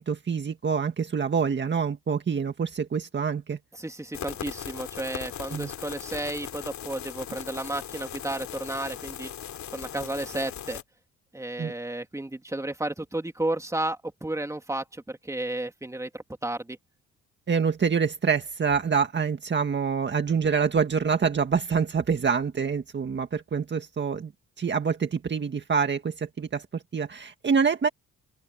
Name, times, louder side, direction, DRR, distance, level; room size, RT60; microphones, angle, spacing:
voice 1, 0.0-3.6 5.5-5.7 11.6-11.7 17.5-24.3 24.6-27.9, right 6 dB, 35° right, 1.8 m, -26 dB
voice 2, 3.7-9.3 9.7-10.8 11.3-16.8, right 1 dB, 10° right, 3.0 m, -32 dB
sound 1, 4.1-10.8, left 10 dB, 70° left, 3.0 m, -39 dB
open air
cardioid pair, 90°, 30 cm